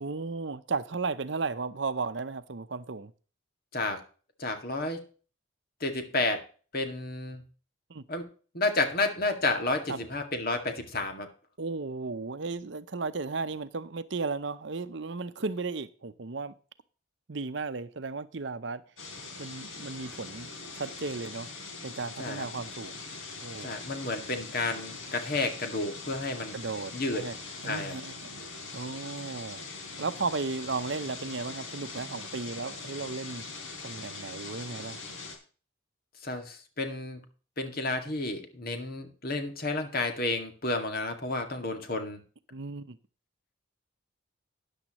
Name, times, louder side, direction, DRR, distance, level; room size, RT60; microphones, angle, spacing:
voice 1, 0.0-3.1 7.9-8.0 9.9-10.0 11.6-16.5 17.3-18.8 19.4-20.5 20.7-21.5 21.8-22.9 23.4-23.8 26.5-27.4 27.6-28.3 28.7-29.6 30.0-33.4 33.8-35.0 42.5-43.0, right 4 dB, 60° right, 0.7 m, -35 dB
voice 2, 4.4-5.0 5.8-6.4 6.7-7.4 8.1-8.3 8.5-11.3 22.2-22.4 23.6-26.6 26.9-27.3 27.6-27.9 36.2-37.2 37.6-42.2, left 2 dB, 45° left, 2.1 m, -31 dB
sound 1, 19.0-35.4, left 3 dB, 80° left, 3.7 m, -42 dB
13.5 x 10.0 x 3.0 m
head